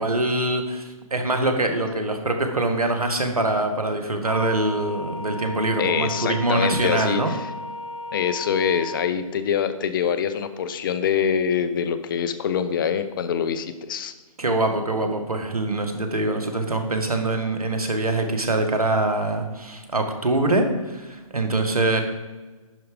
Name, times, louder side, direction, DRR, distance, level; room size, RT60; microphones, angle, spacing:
voice 1, 0.0-7.3 14.4-22.0, right 2 dB, 90° right, 5 dB, 1.6 m, -24 dB
sound 1, 4.2-9.1, left 2 dB, 85° left, 2.1 m, -35 dB
voice 2, 5.8-7.5 8.1-14.1, left 7 dB, 35° left, 12 dB, 0.7 m, -24 dB
11.0 x 4.7 x 5.1 m, 1.2 s
figure-of-eight pair, 145°, 18 cm